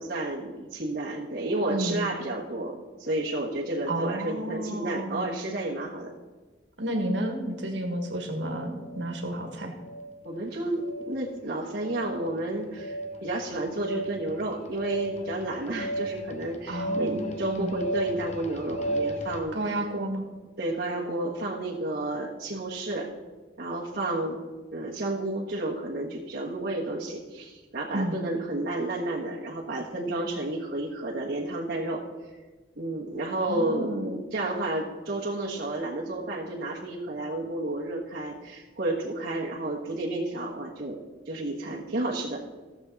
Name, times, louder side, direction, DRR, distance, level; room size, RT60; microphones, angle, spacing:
voice 1, 0.0-6.1 10.2-19.6 20.6-23.1 23.6-24.4 24.7-32.0 32.8-41.0 41.3-42.4, right 2 dB, 55° right, -5 dB, 1.4 m, -31 dB
voice 2, 1.7-2.0 3.9-5.4 6.8-9.8 16.7-17.2 17.6-17.8 19.5-20.3 27.9-28.2 33.4-34.2, right 1 dB, 70° right, 2 dB, 1.8 m, -31 dB
Big Bang, 7.9-8.1 8.8-9.2 9.8-10.2 10.8-11.2 11.8-12.2 12.8-19.4, right 1 dB, 40° left, 1.1 m, -34 dB
15.5 x 7.2 x 4.1 m, 1.3 s
head